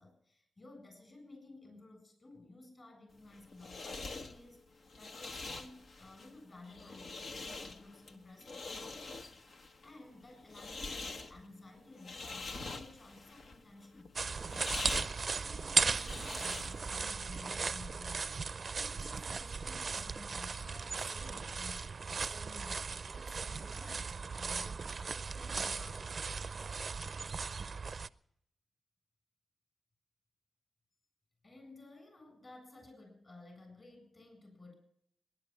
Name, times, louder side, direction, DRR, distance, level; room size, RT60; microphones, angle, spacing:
voice 1, 0.0-18.4 18.8-26.4 31.4-34.7, left 2 dB, 40° left, 5 dB, 7.9 m, -55 dB
sound 1, 3.2-17.0, left 3 dB, 70° left, 1.2 m, -45 dB
sound 2, 14.2-28.1, right 5 dB, 55° right, 0.5 m, -37 dB
21.0 x 10.5 x 6.0 m, 0.73 s
cardioid pair, 50°, 0 cm